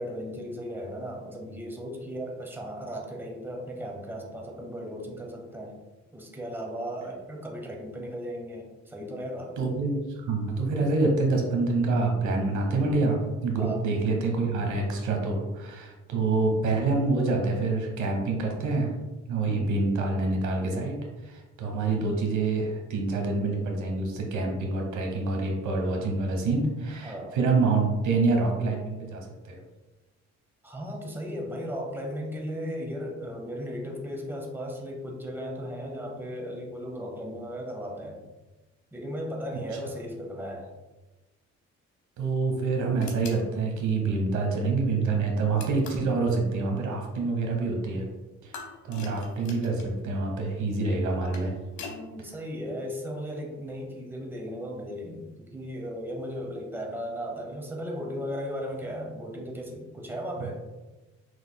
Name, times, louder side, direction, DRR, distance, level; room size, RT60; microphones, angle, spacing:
voice 1, 0.0-5.8 6.1-9.5 13.6-13.8 19.5-19.7 27.0-27.3 30.6-38.2 38.9-40.7 51.9-60.6, equal, 5° right, 0 dB, 0.9 m, -36 dB
voice 2, 9.6-10.0 10.3-18.9 19.3-21.0 21.2-29.6 42.2-48.0 48.4-48.6 48.8-51.5 60.4-60.5, right 3 dB, 75° right, 2 dB, 0.9 m, -26 dB
sound 1, 43.0-43.4 45.6-46.1 48.5-49.9 51.1-52.0, left 5 dB, 75° left, 0.9 m, -42 dB
6.0 x 3.2 x 2.2 m, 1.1 s
cardioid pair, 90°, 30 cm